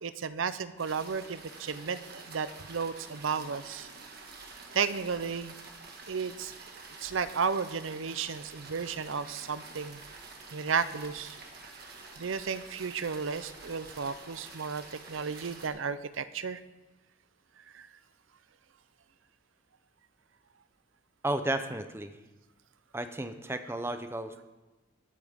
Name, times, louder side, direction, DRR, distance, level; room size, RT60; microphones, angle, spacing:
voice 1, 0.0-4.4 4.7-5.6 6.1-6.7 7.0-10.0 10.5-11.4 12.2-16.6 17.7-17.9, right 5 dB, 75° right, 13 dB, 0.6 m, -33 dB
sound 1, 0.8-15.7, right 3 dB, 50° right, 1.7 m, -48 dB
voice 2, 21.2-22.2 22.9-24.4, right 1 dB, 10° right, 9 dB, 0.6 m, -33 dB
21.0 x 8.8 x 3.6 m, 1.1 s
head